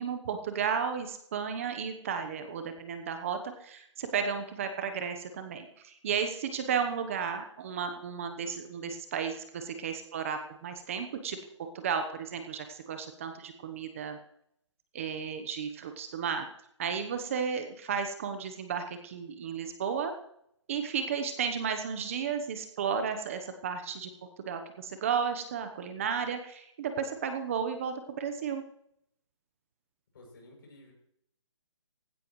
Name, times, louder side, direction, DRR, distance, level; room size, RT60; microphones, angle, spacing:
voice 1, 0.0-11.4 11.7-14.2 14.9-16.5 16.8-20.1 20.7-24.1 24.5-28.6, right 6 dB, 25° right, 7 dB, 1.0 m, -33 dB
voice 2, 30.1-30.9, left 1 dB, 45° left, 0 dB, 7.2 m, -53 dB
17.5 x 16.0 x 3.2 m, 0.73 s
hypercardioid pair, 165°, 16 cm